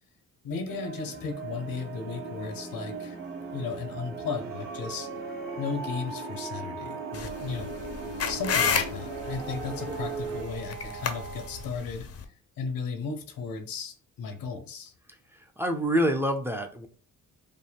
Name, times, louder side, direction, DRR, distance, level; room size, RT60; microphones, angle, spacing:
voice 1, 0.4-3.2 3.5-5.1 5.6-7.7 8.3-12.1 12.6-14.9, left 5 dB, 80° left, 0.9 m, -35 dB
sound 1, 0.7-10.4, right 4 dB, 35° right, 0.9 m, -40 dB
sound 2, 1.2-11.7, right 4 dB, 70° right, 1.7 m, -41 dB
sound 3, 7.1-12.2, left 6 dB, 45° left, 0.6 m, -31 dB
voice 2, 15.3-16.9, equal, 5° right, 0.5 m, -27 dB
5.3 x 2.2 x 3.4 m
cardioid pair, 120°, 33 cm